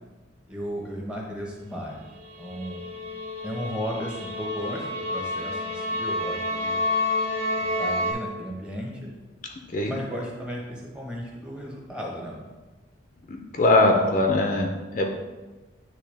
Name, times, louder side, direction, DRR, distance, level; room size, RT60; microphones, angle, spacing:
voice 1, 0.5-2.0 2.4-2.8 3.4-6.8 7.6-9.1 9.8-12.4 13.9-14.3, equal, 5° right, -3 dB, 1.1 m, -35 dB
sound 1, 2.2-8.1, left 2 dB, 50° right, 1.7 m, -29 dB
voice 2, 13.3-15.1, left 2 dB, 40° left, 2 dB, 0.5 m, -21 dB
9.7 x 3.3 x 3.4 m, 1.2 s
head